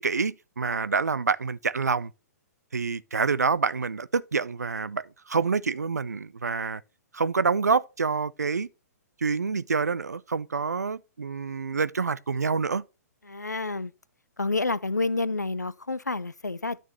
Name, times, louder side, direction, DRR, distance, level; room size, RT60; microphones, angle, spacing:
voice 1, 0.0-2.1 2.7-6.8 7.1-8.7 9.2-12.8, right 5 dB, 70° right, 0.5 m, -27 dB
voice 2, 13.2-13.9 14.4-16.8, left 3 dB, 85° left, 0.6 m, -29 dB
12.5 x 6.4 x 2.9 m
figure-of-eight pair, 115°, 9 cm